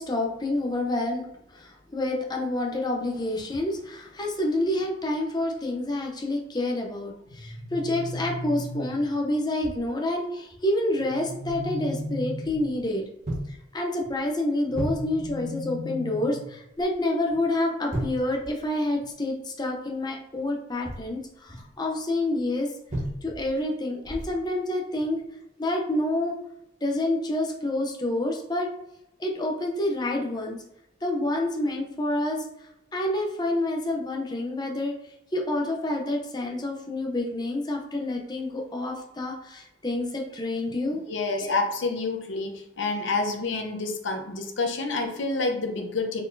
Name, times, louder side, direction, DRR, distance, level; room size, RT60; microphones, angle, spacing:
voice 1, 0.0-13.0 13.5-22.7 23.2-25.2 25.6-26.4 26.8-28.7 29.2-30.6 31.0-32.4 32.9-35.0 35.3-41.0 41.4-41.6, left 1 dB, 20° left, 0 dB, 0.6 m, -28 dB
sound 1, 7.3-9.2 11.0-12.9 14.7-16.6, left 1 dB, 50° left, 1.0 m, -36 dB
sound 2, 9.6-9.9 10.5-10.6 11.4-11.7 12.4-13.0 13.2-13.6 14.0-14.2 14.7-15.4 16.7-17.0 17.3-17.4 17.9-19.1 20.7-21.7 22.9-23.6 24.0-24.5 25.0-25.2, right 1 dB, 40° right, 1.1 m, -35 dB
voice 2, 41.1-46.2, left 3 dB, 85° left, 4 dB, 0.8 m, -28 dB
4.2 x 3.8 x 2.6 m, 0.85 s
head